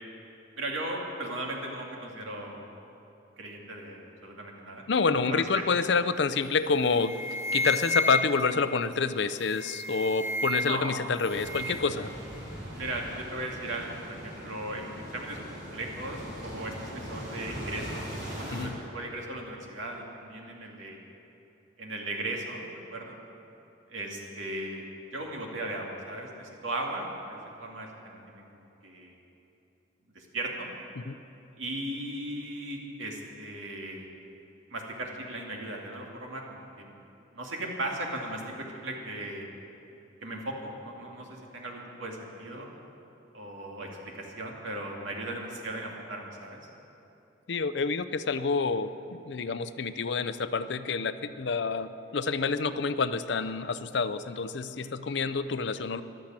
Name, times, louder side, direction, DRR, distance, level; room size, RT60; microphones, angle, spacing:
voice 1, 0.6-2.6 3.4-4.8 5.3-5.6 10.6-11.1 12.7-18.1 18.4-21.0 21.8-23.2 23.9-24.9 25.1-28.4 28.8-29.1 30.1-30.7 31.6-34.1 34.7-36.9 37.3-39.5 40.2-42.7 43.3-46.6, right 1 dB, 90° right, -1 dB, 2.5 m, -37 dB
voice 2, 4.9-7.2 7.5-12.1 18.5-18.8 31.0-31.2 47.5-56.0, left 4 dB, 65° left, 12 dB, 0.5 m, -28 dB
sound 1, 6.4-6.7 6.9-8.6 9.4-10.9 11.1-11.9, left 1 dB, 15° right, 0.8 m, -31 dB
sound 2, 11.3-18.7, equal, 60° right, 3.8 m, -40 dB
14.5 x 11.5 x 7.5 m, 2.9 s
head